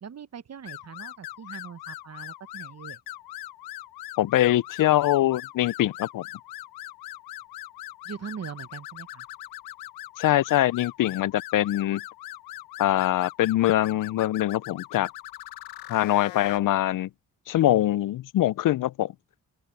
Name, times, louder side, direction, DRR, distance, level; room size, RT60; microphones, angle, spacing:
voice 1, 0.0-3.0 8.0-9.3, right 7 dB, 45° right, 1.1 m, -41 dB
sound 1, 0.7-16.6, left 15 dB, 90° left, 1.4 m, -41 dB
voice 2, 4.2-6.2 10.2-12.0 12.8-15.1 15.9-17.1 17.5-19.1, left 14 dB, 60° left, 0.6 m, -23 dB
open air
supercardioid pair, 60°, 36 cm